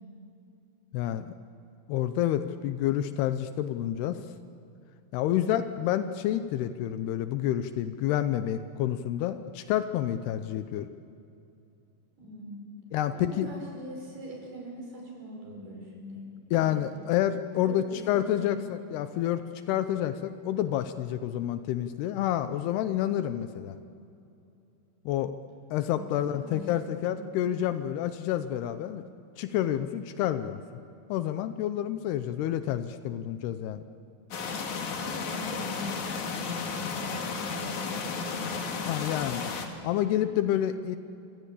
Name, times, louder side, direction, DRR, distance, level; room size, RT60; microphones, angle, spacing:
voice 1, 0.9-1.4 1.9-4.2 5.1-10.9 12.9-13.5 16.5-23.8 25.1-25.3 25.7-29.1 29.4-30.6 31.1-33.8 38.9-39.5 39.8-41.0, left 11 dB, 80° left, 10 dB, 2.8 m, -29 dB
voice 2, 12.2-12.7 13.1-16.3 16.6-16.8 17.6-18.6 25.9-27.2 35.0-38.6, left 1 dB, 70° right, -1 dB, 7.6 m, -42 dB
sound 1, 34.3-39.7, left 5 dB, 50° left, 3.2 m, -33 dB
26.5 x 26.0 x 8.4 m, 2.6 s
omnidirectional pair, 4.7 m